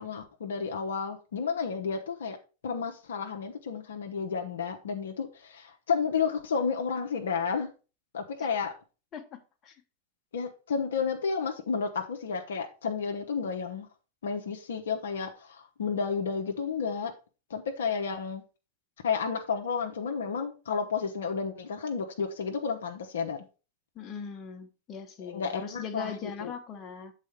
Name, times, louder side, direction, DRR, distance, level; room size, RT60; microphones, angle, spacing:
voice 1, 0.0-2.4 2.6-7.7 8.1-8.7 10.3-13.9 14.2-17.1 17.5-18.4 19.0-23.4 25.2-26.1 26.4-26.5, left 5 dB, 65° left, 0.8 m, -31 dB
voice 2, 9.1-9.8 23.9-27.1, left 6 dB, 30° left, 1.1 m, -40 dB
7.6 x 4.2 x 4.8 m
figure-of-eight pair, 90°, 0 cm